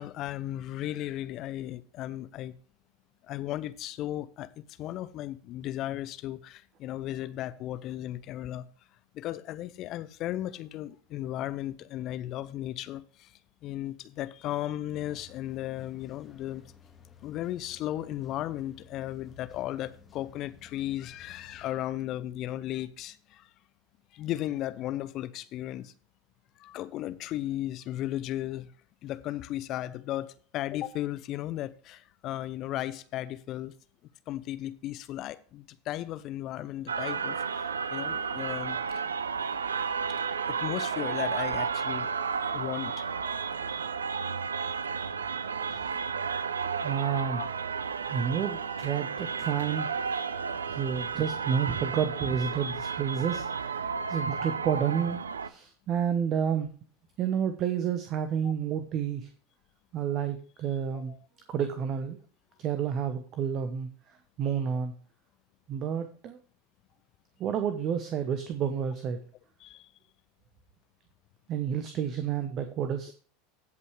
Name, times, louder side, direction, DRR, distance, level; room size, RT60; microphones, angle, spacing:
voice 1, 0.0-2.5 3.2-8.7 9.1-16.6 17.2-23.5 24.1-25.9 26.6-28.7 29.0-33.7 34.3-39.0 40.5-42.1 42.5-43.1 47.3-47.5 60.9-61.2 69.6-69.9, left 13 dB, 45° left, 0.7 m, -35 dB
sound 1, 14.9-21.7, left 6 dB, 20° left, 1.7 m, -55 dB
sound 2, 36.9-55.5, right 6 dB, 80° right, 0.5 m, -32 dB
voice 2, 46.4-47.4 48.1-49.9 50.7-56.7 57.2-59.3 59.9-61.1 61.5-62.2 62.6-64.9 65.7-66.4 67.4-69.2 71.5-73.1, right 8 dB, 40° right, 1.0 m, -30 dB
16.0 x 5.5 x 3.2 m
figure-of-eight pair, 80°, 0 cm